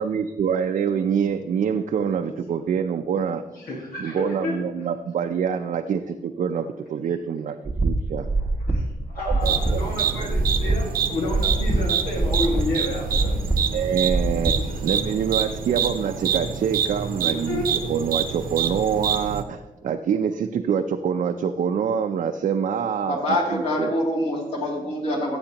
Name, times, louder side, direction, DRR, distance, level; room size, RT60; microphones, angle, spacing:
voice 1, 0.0-3.4 4.0-7.6 7.8-8.3 9.3-10.1 13.7-14.5 14.8-17.6 17.9-23.2 23.5-23.9, right 7 dB, 60° right, 5 dB, 0.5 m, -25 dB
voice 2, 3.5-4.5 8.4-8.8 9.1-13.5 14.4-14.8 17.2-17.6, left 2 dB, 90° left, -2 dB, 1.8 m, -30 dB
sound 1, 7.6-15.1, right 2 dB, 10° right, 0.9 m, -25 dB
sound 2, 9.4-19.4, right 8 dB, 85° right, 0.7 m, -27 dB
voice 3, 23.0-25.4, left 1 dB, 45° left, -3 dB, 2.6 m, -25 dB
14.5 x 7.9 x 2.9 m, 1.1 s
cardioid pair, 120°, 15 cm